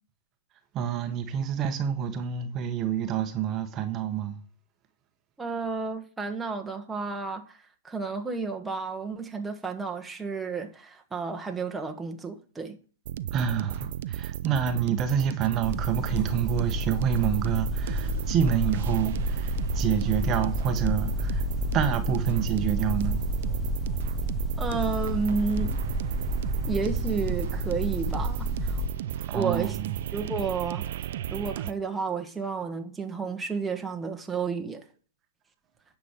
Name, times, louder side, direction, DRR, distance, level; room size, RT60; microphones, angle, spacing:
voice 1, 0.7-4.4 13.3-21.4 21.7-23.2 29.3-30.0, right 9 dB, 25° right, 1.2 m, -28 dB
voice 2, 5.4-12.8 24.6-25.8 26.7-28.8 29.3-29.8 30.1-30.9 31.3-34.8, right 4 dB, 5° right, 1.3 m, -31 dB
sound 1, 13.0-31.7, right 11 dB, 55° right, 0.7 m, -34 dB
sound 2, 15.6-28.9, left 1 dB, 10° left, 2.1 m, -30 dB
10.0 x 6.1 x 7.4 m
hypercardioid pair, 140°, 0 cm